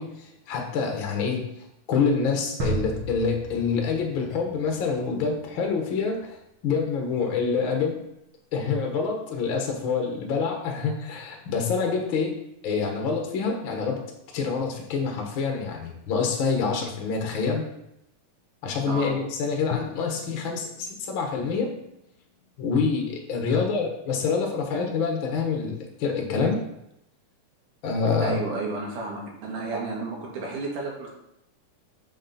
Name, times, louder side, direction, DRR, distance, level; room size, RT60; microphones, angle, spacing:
voice 1, 0.0-1.4 1.9-6.4 6.6-8.0 8.5-12.4 12.6-14.0 14.3-17.7 18.6-21.7 22.6-26.6 27.8-28.4, left 5 dB, 55° left, 2 dB, 1.4 m, -26 dB
sound 1, 2.6-5.4, right 2 dB, 45° right, 2.1 m, -33 dB
Drum, 19.7-23.7, left 12 dB, 80° left, 2.0 m, -42 dB
voice 2, 28.2-31.1, right 3 dB, 75° right, -2 dB, 3.3 m, -32 dB
8.6 x 5.8 x 4.2 m, 0.82 s
omnidirectional pair, 3.8 m